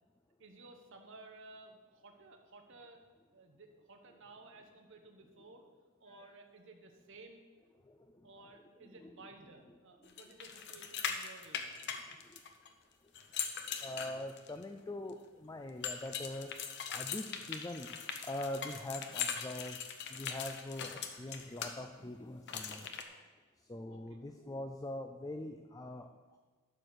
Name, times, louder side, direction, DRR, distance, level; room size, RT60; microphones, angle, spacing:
voice 1, 0.4-3.0 3.3-5.6 6.0-7.5 8.2-11.8 23.9-24.2, right 3 dB, 65° right, 3 dB, 1.1 m, -56 dB
voice 2, 7.8-8.3 8.9-9.3 11.9-12.4 13.7-16.5 16.9-17.9 18.2-19.8 20.1-22.9 23.6-26.4, left 1 dB, 15° left, 5 dB, 0.4 m, -43 dB
sound 1, 10.2-12.7 13.1-14.6 15.8-21.7 22.5-23.0, left 7 dB, 55° left, 0.8 m, -40 dB
12.0 x 4.5 x 6.6 m, 1.3 s
head